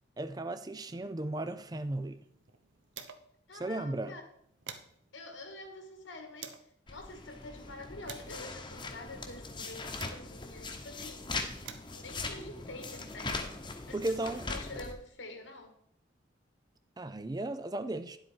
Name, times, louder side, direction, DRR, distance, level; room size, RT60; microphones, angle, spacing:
voice 1, 0.2-2.3 3.5-4.2 13.9-14.4 17.0-18.2, right 2 dB, 20° right, 0.4 m, -35 dB
sound 1, 1.7-3.5 3.8-3.9 4.2-6.8 7.4-10.6 11.3-13.5, right 7 dB, 75° right, 0.9 m, -52 dB
voice 2, 3.5-4.2 5.1-6.6 6.9-11.3 11.9-13.5 13.9-15.8, left 2 dB, 80° left, 1.9 m, -47 dB
sound 2, 6.9-14.9, left 3 dB, 25° left, 1.0 m, -40 dB
10.5 x 7.9 x 4.5 m
head